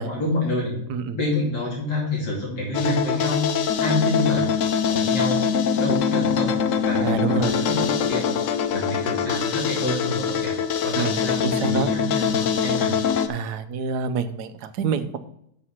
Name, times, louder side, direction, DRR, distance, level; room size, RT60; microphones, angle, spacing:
voice 1, 0.0-0.7 1.1-4.5 4.9-10.5 10.8-12.9, left 1 dB, 85° left, -4 dB, 3.3 m, -28 dB
sound 1, 2.7-13.3, left 7 dB, 65° left, 0.8 m, -23 dB
voice 2, 7.0-7.6 10.9-11.9 13.3-15.2, right 6 dB, 75° right, 9 dB, 1.3 m, -27 dB
6.6 x 6.4 x 5.7 m, 0.74 s
omnidirectional pair, 1.8 m